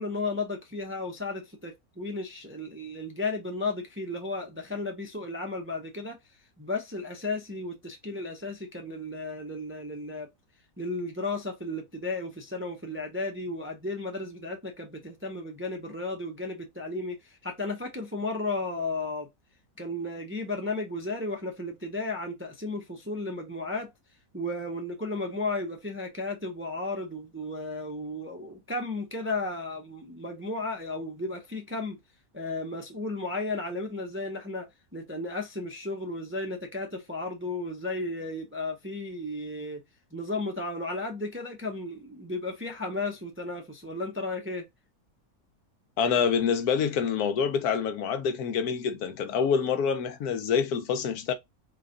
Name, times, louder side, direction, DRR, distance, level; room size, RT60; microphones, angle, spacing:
voice 1, 0.0-6.2 6.6-10.3 10.8-19.3 19.8-23.9 24.3-32.0 32.3-34.7 34.9-39.8 40.1-44.7, left 2 dB, 15° right, 0.4 m, -34 dB
voice 2, 46.0-51.3, left 6 dB, 90° left, 1.2 m, -26 dB
3.9 x 2.3 x 3.8 m
omnidirectional pair, 1.6 m